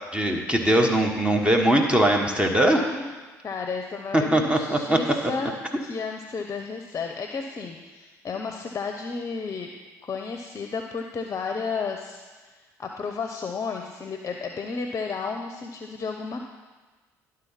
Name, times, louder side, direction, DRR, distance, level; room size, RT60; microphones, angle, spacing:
voice 1, 0.1-2.8 4.1-5.0, right 1 dB, 10° right, 2 dB, 1.2 m, -21 dB
voice 2, 2.7-3.2 3.4-5.5 5.8-9.7 10.0-16.4, left 5 dB, 35° left, 4 dB, 0.7 m, -32 dB
11.5 x 3.8 x 5.7 m, 1.4 s
hypercardioid pair, 55°, 9 cm